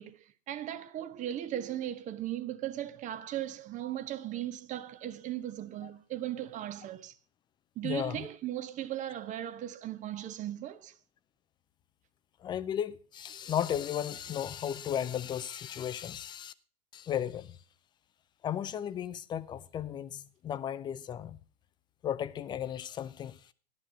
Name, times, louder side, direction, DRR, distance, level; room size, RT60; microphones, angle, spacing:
voice 1, 0.0-7.1 7.8-10.9, right 12 dB, 20° right, 0.8 m, -37 dB
voice 2, 7.8-8.3 12.4-16.5 16.9-17.6 18.4-21.4 22.0-23.5, left 10 dB, 15° left, 0.5 m, -35 dB
12.0 x 11.5 x 3.8 m
figure-of-eight pair, 105°, 34 cm